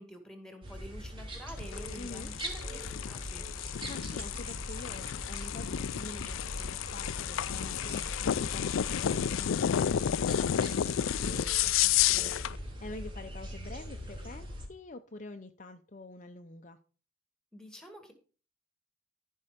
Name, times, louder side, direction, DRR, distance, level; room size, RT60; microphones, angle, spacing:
voice 1, 0.0-3.5 17.5-18.1, equal, 5° left, 2.0 m, -48 dB
sound 1, 0.6-14.7, equal, 25° right, 3.5 m, -41 dB
sound 2, 1.6-12.6, left 10 dB, 80° left, 0.4 m, -31 dB
voice 2, 2.0-2.3 3.5-16.8, left 2 dB, 40° left, 0.6 m, -47 dB
14.0 x 5.5 x 5.1 m
head